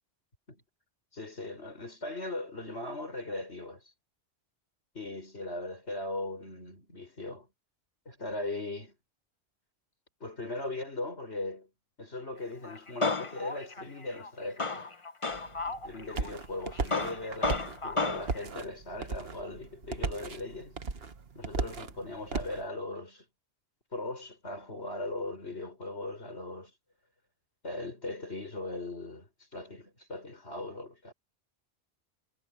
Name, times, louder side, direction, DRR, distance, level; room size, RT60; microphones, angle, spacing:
voice 1, 1.1-3.9 4.9-7.5 8.0-9.0 10.2-11.7 12.0-14.9 15.7-20.8 21.3-23.3 23.9-26.7 27.6-31.1, left 2 dB, 85° left, 6.4 m, -39 dB
Male speech man speaking, 12.6-16.3 16.7-18.4, left 3 dB, 30° left, 1.1 m, -33 dB
sound 1, 15.3-22.6, right 4 dB, 65° right, 1.5 m, -37 dB
omnidirectional pair, 1.1 m